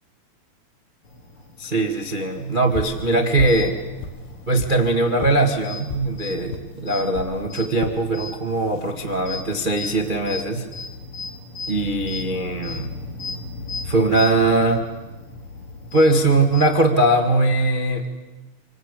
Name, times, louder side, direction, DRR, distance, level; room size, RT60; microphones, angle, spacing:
sound 1, 1.0-16.9, left 3 dB, 35° left, 3.4 m, -37 dB
voice 1, 1.6-3.8 4.5-10.7 11.7-12.9 13.8-14.8 15.9-18.1, right 2 dB, 70° right, 3 dB, 0.4 m, -20 dB
sound 2, 2.7-3.0 3.4-3.7 4.0-4.8 5.2-5.4 5.9-6.1 6.5-6.7 7.1-7.3 7.8-8.0 8.6-8.9, left 5 dB, 70° left, 3.1 m, -31 dB
28.5 x 24.5 x 8.4 m, 1.2 s
omnidirectional pair, 4.6 m